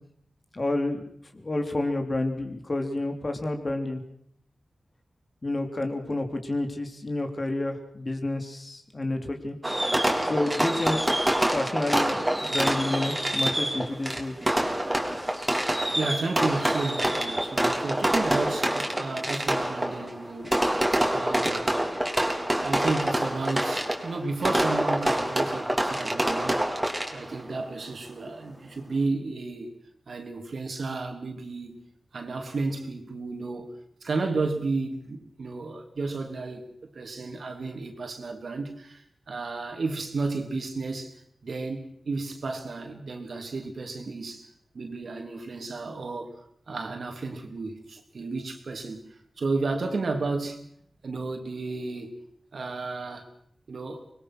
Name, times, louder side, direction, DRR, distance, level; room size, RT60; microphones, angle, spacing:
voice 1, 0.5-1.0 1.3-4.0 5.4-9.6 10.2-11.1 11.5-14.4, left 2 dB, 40° left, 3.6 m, -29 dB
Fireworks, 9.6-27.4, right 1 dB, 10° right, 3.9 m, -26 dB
voice 2, 16.0-20.5 21.1-21.7 22.6-26.7 27.1-29.8 30.1-31.9 32.1-41.1 41.4-44.5 44.7-46.3 46.7-49.0 49.4-50.6 51.0-52.2 52.5-53.3 53.7-54.0, right 3 dB, 70° right, 3.3 m, -32 dB
25.0 x 21.5 x 6.3 m
wide cardioid pair, 65°, 0 cm